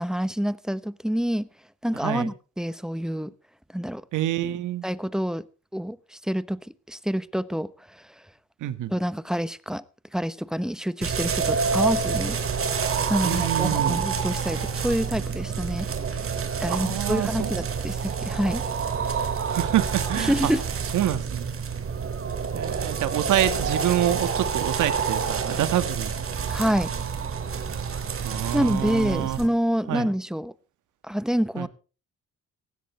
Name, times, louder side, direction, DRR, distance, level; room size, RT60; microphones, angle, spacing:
voice 1, 0.0-1.5 1.8-3.3 3.7-4.0 4.8-5.5 5.7-8.1 8.9-9.8 10.1-12.4 13.1-16.2 16.6-18.6 20.1-20.6 26.5-26.9 28.5-30.5 31.0-31.7, equal, ahead, 1.0 m, -27 dB
voice 2, 4.1-4.8 8.6-8.9 13.2-14.0 16.7-17.5 19.5-20.5 20.9-21.5 22.5-26.1 28.2-29.4 29.9-30.1 31.6-31.7, right 12 dB, 80° right, 1.9 m, -27 dB
sound 1, 11.0-29.5, right 6 dB, 45° right, 2.8 m, -28 dB
18.5 x 15.5 x 3.3 m
cardioid pair, 90°, 30 cm